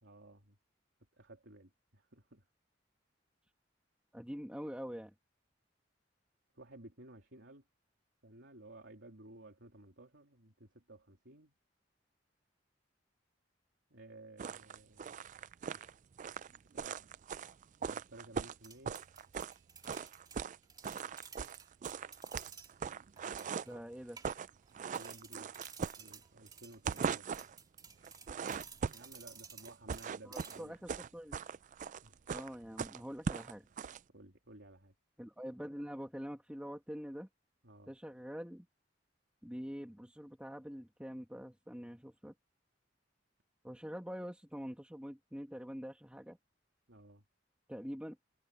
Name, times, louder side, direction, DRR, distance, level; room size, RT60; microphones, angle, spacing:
voice 1, 0.0-0.6 1.2-2.4 6.5-7.6 8.2-11.5 13.9-15.3 16.7-17.0 17.9-19.0 24.7-25.5 25.8-27.3 28.9-30.7 32.0-32.2 34.1-34.9 37.6-37.9 46.9-47.2, right 2 dB, 90° right, 3.3 m, -56 dB
voice 2, 4.1-5.1 23.7-24.2 30.2-31.4 32.3-33.7 35.2-37.3 37.9-38.7 39.4-42.3 43.6-46.4 47.7-48.2, equal, 5° right, 1.9 m, -45 dB
sound 1, 14.4-19.6 19.8-20.6 20.8-23.8 24.1-24.5 24.7-26.4 26.7-27.5 28.0-29.2 29.6-34.0, right 6 dB, 45° right, 0.4 m, -40 dB
sound 2, 18.6-22.7 23.2-23.7 24.2-24.7 24.9-30.8, right 5 dB, 20° right, 2.6 m, -54 dB
head